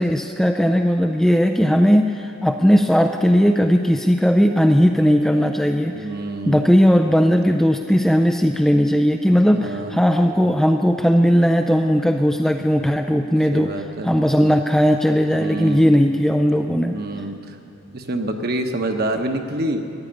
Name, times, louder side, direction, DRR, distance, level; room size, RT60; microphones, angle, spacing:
voice 1, 0.0-6.1 6.5-13.7 14.0-16.9, equal, ahead, 5 dB, 0.3 m, -17 dB
voice 2, 5.9-6.6 9.4-10.0 13.5-14.1 15.3-15.9 16.9-17.6 17.9-19.8, right 1 dB, 45° right, 5 dB, 1.1 m, -27 dB
14.5 x 10.5 x 8.8 m, 2.7 s
head